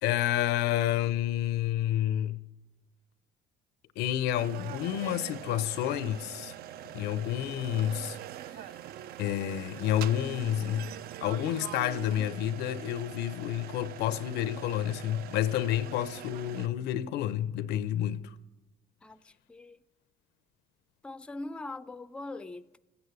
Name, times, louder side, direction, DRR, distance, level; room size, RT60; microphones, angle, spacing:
voice 1, 0.0-2.4 4.0-6.5 6.9-8.2 8.5-8.7 9.2-10.9 11.2-18.3, left 12 dB, 85° left, 0.6 m, -29 dB
sound 1, 4.4-16.7, right 12 dB, 65° right, 0.4 m, -43 dB
voice 2, 19.0-19.8 21.0-22.8, left 2 dB, 5° left, 0.4 m, -42 dB
15.5 x 7.9 x 8.1 m
cardioid pair, 110°, 17 cm